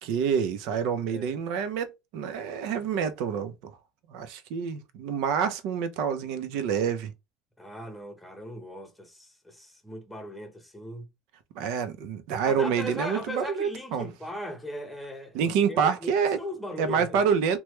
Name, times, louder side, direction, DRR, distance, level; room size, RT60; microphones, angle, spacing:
voice 1, 0.0-3.5 4.1-7.1 11.5-14.0 15.3-16.4 16.8-17.6, right 7 dB, 70° right, 0.6 m, -27 dB
voice 2, 7.6-11.1 12.4-17.3, left 1 dB, 5° left, 0.9 m, -38 dB
3.0 x 2.2 x 3.2 m
supercardioid pair, 125°, 0 cm